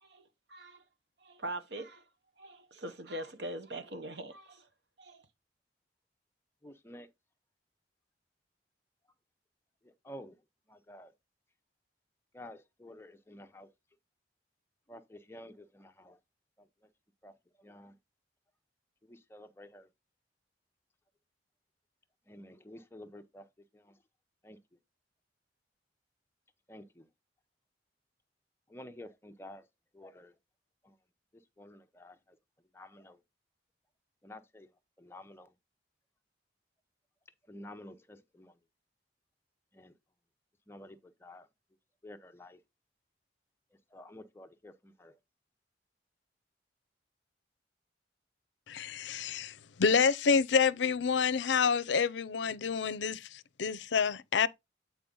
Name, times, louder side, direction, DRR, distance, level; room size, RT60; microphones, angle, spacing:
voice 1, 0.0-0.8 1.2-2.0 2.4-4.7 5.0-5.2, right 1 dB, 70° right, 1.1 m, -42 dB
voice 2, 6.6-7.1 10.1-10.3 10.9-11.1 12.3-13.7 14.9-16.1 17.2-17.3 17.6-17.9 19.3-19.8 22.3-23.4 24.4-24.6 26.7-26.8 28.7-29.6 30.0-30.3 31.6-32.1 32.8-33.1 34.2-34.7 35.0-35.5 37.5-38.5 39.8-39.9 40.7-41.0 41.2-41.4 42.0-42.6 43.9-44.7 45.0-45.1, left 1 dB, 15° left, 0.7 m, -50 dB
voice 3, 48.7-49.5 49.8-54.5, left 6 dB, 80° left, 0.5 m, -28 dB
8.5 x 4.4 x 3.8 m
head